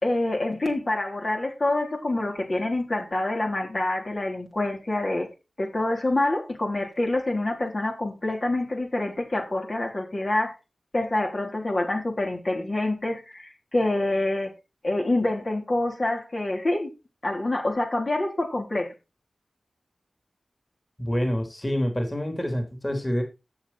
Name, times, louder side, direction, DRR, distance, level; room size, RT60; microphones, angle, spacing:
voice 1, 0.0-5.3 5.6-10.6 10.9-14.5 14.8-16.9 17.2-18.9, left 2 dB, 45° left, 1 dB, 3.5 m, -26 dB
voice 2, 21.0-23.2, equal, 20° left, 4 dB, 3.4 m, -27 dB
13.5 x 7.5 x 4.3 m, 0.28 s
wide cardioid pair, 70°, 0 cm